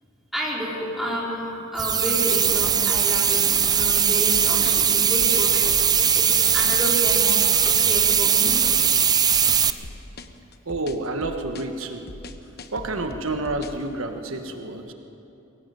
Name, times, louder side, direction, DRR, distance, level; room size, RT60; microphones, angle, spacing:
voice 1, 0.3-5.7 6.1-8.6, right 1 dB, ahead, -5 dB, 4.4 m, -30 dB
sound 1, 1.8-9.7, right 7 dB, 20° right, 0.5 m, -20 dB
sound 2, 2.9-13.9, left 2 dB, 50° left, 1.1 m, -41 dB
voice 2, 10.7-12.0 12.7-14.9, right 2 dB, 90° right, 5 dB, 1.4 m, -29 dB
22.5 x 18.0 x 7.6 m, 2.9 s
head